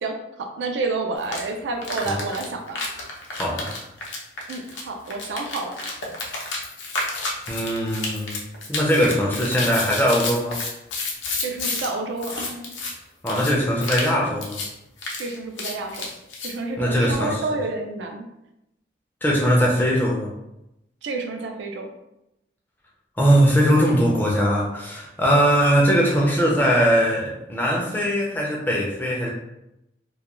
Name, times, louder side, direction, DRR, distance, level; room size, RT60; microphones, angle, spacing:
voice 1, 0.0-2.8 4.5-5.8 11.4-12.7 15.2-16.1 16.4-18.2 21.0-21.9, right 3 dB, 75° right, 4 dB, 0.4 m, -29 dB
sound 1, 1.2-1.4 1.8-11.9 12.2-12.9 13.3-13.5 13.8-14.1 14.4-14.7 15.0-16.5, left 3 dB, 85° left, 0.6 m, -30 dB
voice 2, 3.3-3.7 7.5-8.4 8.7-10.6 13.2-14.6 16.8-17.4 19.2-20.3 23.2-29.3, equal, 10° left, -3 dB, 0.4 m, -20 dB
2.3 x 2.2 x 2.9 m, 0.88 s
head